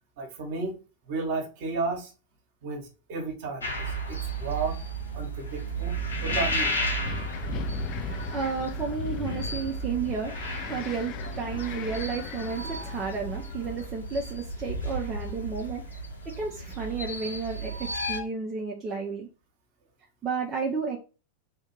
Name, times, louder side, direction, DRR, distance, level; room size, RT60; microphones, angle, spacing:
voice 1, 0.2-0.7 1.1-2.1 2.6-4.8 5.1-5.9 6.2-6.7, right 4 dB, 50° right, 1.2 m, -33 dB
sound 1, 3.6-18.2, right 2 dB, 75° left, 0.9 m, -34 dB
Wind, 5.8-13.9, left 10 dB, 40° left, 0.4 m, -38 dB
voice 2, 7.9-16.0 16.4-19.3 20.2-21.0, right 5 dB, 20° right, 0.8 m, -32 dB
3.5 x 2.7 x 4.5 m
figure-of-eight pair, 90°, 0 cm